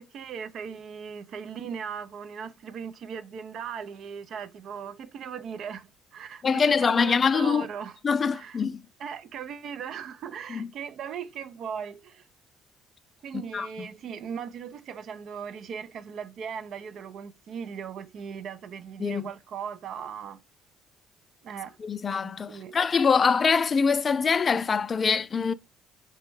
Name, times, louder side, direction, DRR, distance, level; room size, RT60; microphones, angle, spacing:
voice 1, 0.0-8.0 8.3-8.6 9.0-12.3 13.2-20.4 21.4-21.8 22.2-22.8, right 7 dB, 65° right, 0.4 m, -38 dB
voice 2, 6.4-7.7 8.0-8.8 10.5-10.7 13.5-13.7 19.0-19.3 21.8-25.5, left 5 dB, 40° left, 0.3 m, -24 dB
4.1 x 2.1 x 3.2 m
supercardioid pair, 65°, 0 cm